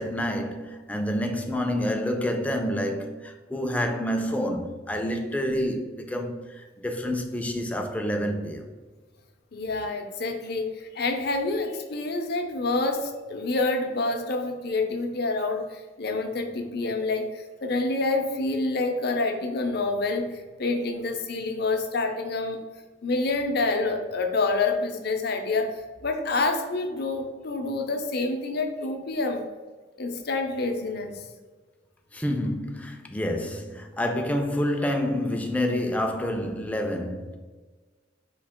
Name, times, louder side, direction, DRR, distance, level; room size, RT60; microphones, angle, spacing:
voice 1, 0.0-8.7 32.1-37.4, equal, 10° left, 0.4 m, -28 dB
voice 2, 9.5-22.6 23.0-25.7 26.0-29.4 30.0-31.1, left 3 dB, 60° left, 0.6 m, -27 dB
4.6 x 2.8 x 3.6 m
head